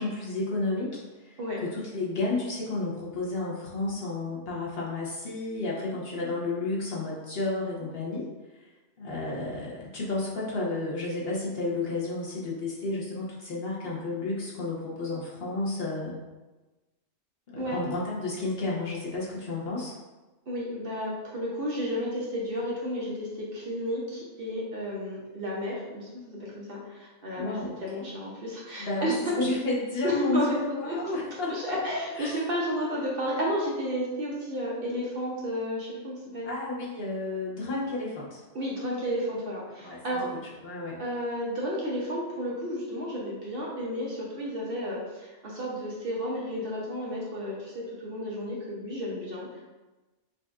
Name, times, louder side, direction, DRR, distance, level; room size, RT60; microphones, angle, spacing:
voice 1, 0.0-8.2 9.0-16.1 17.5-19.9 27.3-28.1 28.8-32.4 32.7-33.0 36.4-38.4 39.8-40.2 40.6-41.0, left 2 dB, 55° left, -5 dB, 1.0 m, -32 dB
voice 2, 20.5-29.4 30.0-30.6 30.8-31.0 31.5-36.5 38.5-40.3 41.0-49.6, equal, 55° right, -4 dB, 0.9 m, -32 dB
5.1 x 2.5 x 2.3 m, 1.2 s
omnidirectional pair, 1.3 m